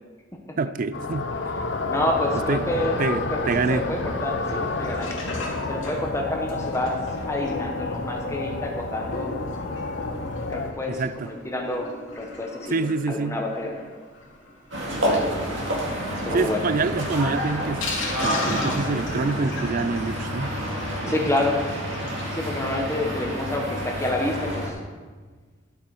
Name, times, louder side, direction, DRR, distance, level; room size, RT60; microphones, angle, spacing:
voice 1, 0.6-1.3 2.5-2.6 3.0-3.9 10.9-11.3 12.7-13.4 14.9-15.2 16.3-20.6 21.0-21.2, right 4 dB, 45° right, 14 dB, 0.4 m, -26 dB
sound 1, 0.9-10.7, left 3 dB, 65° left, 0.8 m, -30 dB
voice 2, 1.9-3.0 3.3-3.4 3.7-5.2 5.7-7.0 7.3-9.3 10.4-13.7 16.1-16.7 21.1-21.6 22.3-24.7, left 1 dB, 15° left, 1 dB, 1.0 m, -28 dB
Sink (filling or washing), 4.3-22.4 22.7-22.8 23.0-23.1 23.5-23.6, left 2 dB, 85° left, 2.9 m, -38 dB
sound 2, 14.7-24.7, equal, 75° right, 2.2 m, -29 dB
11.5 x 7.9 x 4.7 m, 1.4 s
head